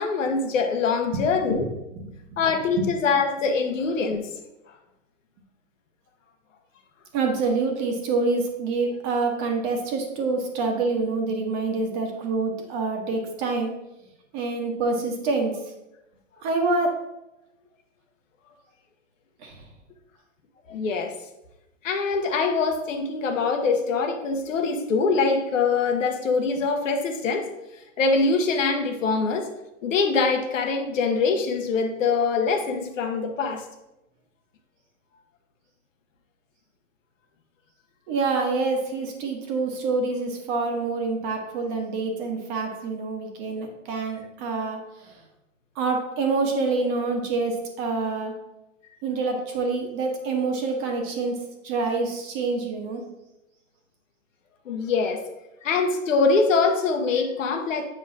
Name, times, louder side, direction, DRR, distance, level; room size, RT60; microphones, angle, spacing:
voice 1, 0.0-1.7 2.4-4.3 20.7-21.1 21.8-27.5 28.0-29.5 29.8-33.6 54.6-55.2 55.6-57.8, left 4 dB, 80° left, 5 dB, 1.1 m, -23 dB
voice 2, 1.1-1.7 2.0-2.4 2.7-2.9 7.1-13.7 14.3-15.6 16.4-16.9 19.4-19.6 38.1-45.2 45.7-48.3 49.0-53.0, right 3 dB, 35° right, 3 dB, 1.3 m, -26 dB
7.9 x 5.3 x 2.8 m, 0.93 s
hypercardioid pair, 145°, 38 cm